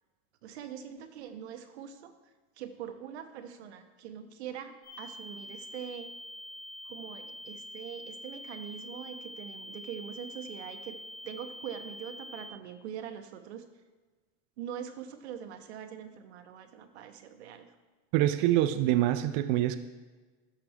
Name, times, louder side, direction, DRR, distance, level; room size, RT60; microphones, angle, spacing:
voice 1, 0.4-2.1 2.6-6.2 6.8-11.0 11.2-13.6 14.6-17.7, right 9 dB, 90° right, 7 dB, 1.0 m, -43 dB
sound 1, 4.8-12.5, left 1 dB, 50° left, 2.3 m, -45 dB
voice 2, 18.1-19.8, right 13 dB, 45° right, 10 dB, 0.4 m, -25 dB
12.5 x 5.9 x 3.5 m, 1.3 s
supercardioid pair, 145°, 32 cm